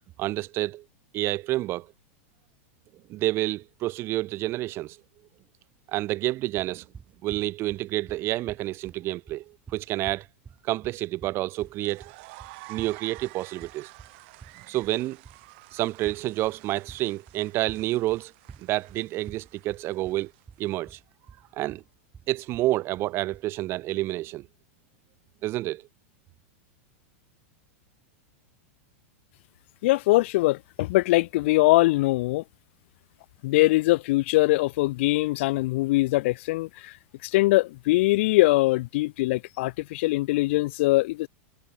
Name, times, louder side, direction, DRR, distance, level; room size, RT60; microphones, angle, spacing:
voice 1, 0.2-0.8 1.1-1.9 3.1-5.0 5.9-6.9 7.2-10.3 10.6-12.1 12.7-13.9 14.7-15.2 15.7-18.3 18.6-20.3 20.6-21.0 21.5-21.8 22.3-24.5 25.4-25.8, right 16 dB, 35° right, 0.7 m, -29 dB
sound 1, 6.6-23.5, right 6 dB, 15° right, 5.9 m, -49 dB
sound 2, 11.6-20.9, right 26 dB, 55° right, 3.9 m, -50 dB
voice 2, 29.8-32.4 33.4-36.9 37.2-41.3, left 20 dB, 60° left, 0.4 m, -22 dB
supercardioid pair, 145°, 7 cm